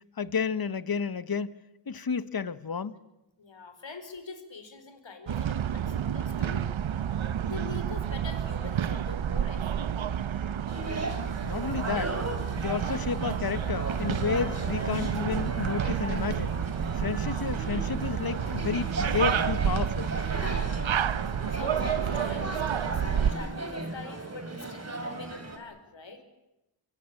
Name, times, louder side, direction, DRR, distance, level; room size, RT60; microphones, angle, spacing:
voice 1, 0.0-1.6 1.9-3.0 11.4-12.2 12.6-16.6 16.9-20.1, left 6 dB, 50° left, 1.3 m, -31 dB
voice 2, 3.4-6.6 7.4-10.0 17.2-17.5 20.8-21.1 21.5-26.2, left 4 dB, 65° left, 4.9 m, -44 dB
sound 1, 5.3-23.3, right 9 dB, 70° right, 1.0 m, -30 dB
sound 2, 10.7-25.6, right 2 dB, 30° right, 5.2 m, -36 dB
25.0 x 24.0 x 8.6 m
cardioid pair, 45°, 48 cm